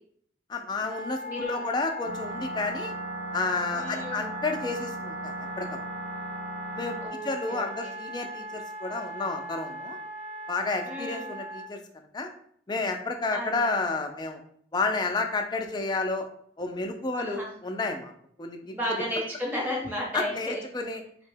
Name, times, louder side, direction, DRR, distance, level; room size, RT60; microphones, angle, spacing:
voice 1, 0.5-2.9 3.3-5.8 6.7-7.0 7.2-10.0 10.5-11.8 12.1-12.3 12.7-14.4 14.7-16.3 16.6-18.1 18.4-18.8 20.1-21.0, left 3 dB, 25° left, 4 dB, 0.3 m, -31 dB
Wind instrument woodwind instrument, 0.9-11.7, right 1 dB, 40° right, 0.7 m, -39 dB
voice 2, 1.3-1.7 3.8-4.2 7.0-8.0 10.9-11.3 13.3-13.7 17.2-17.5 18.7-20.6, equal, 10° right, -3 dB, 0.8 m, -33 dB
sound 1, 2.0-7.1, right 1 dB, 70° right, 0.8 m, -39 dB
3.6 x 2.1 x 3.3 m, 0.63 s
head